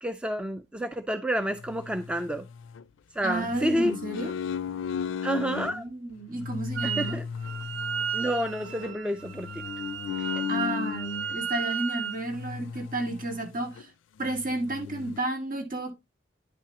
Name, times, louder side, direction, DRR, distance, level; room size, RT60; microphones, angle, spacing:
voice 1, 0.0-2.5 3.1-4.0 5.2-5.9 6.8-7.2 8.1-9.6 10.4-10.5, equal, 5° right, 0.4 m, -29 dB
sound 1, 1.6-2.8 3.3-5.8 6.3-11.4 12.2-13.4 13.8-13.9 14.2-15.2, left 7 dB, 75° left, 0.4 m, -35 dB
voice 2, 3.2-4.3 5.5-7.2 10.5-13.9 14.2-15.9, right 2 dB, 45° right, 2.2 m, -32 dB
Wind instrument woodwind instrument, 6.8-7.2 7.4-12.2, right 7 dB, 85° right, 0.5 m, -34 dB
10.0 x 5.9 x 2.9 m
head